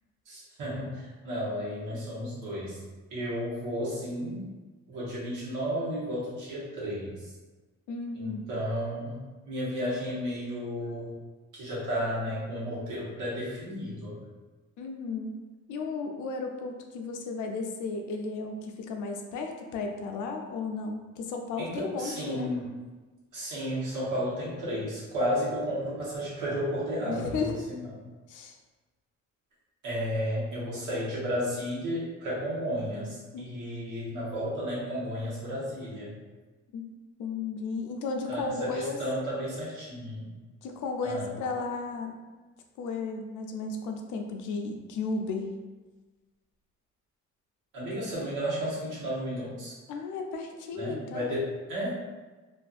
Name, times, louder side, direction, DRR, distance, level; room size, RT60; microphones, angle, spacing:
voice 1, 0.3-2.8 3.1-4.5 4.9-7.3 8.2-11.1 11.5-14.2 21.6-22.7 23.3-27.8 29.8-36.1 38.3-40.2 41.0-41.3 47.7-49.8 50.7-51.9, equal, 90° right, -7 dB, 1.2 m, -33 dB
voice 2, 7.9-8.5 14.8-15.3 15.7-22.5 27.1-27.6 28.3-28.6 33.3-33.6 36.7-36.8 37.2-39.0 40.6-42.1 42.8-45.5 49.9-51.3, left 4 dB, 80° left, 4 dB, 0.5 m, -34 dB
2.5 x 2.4 x 2.4 m, 1.3 s
cardioid pair, 90°, 30 cm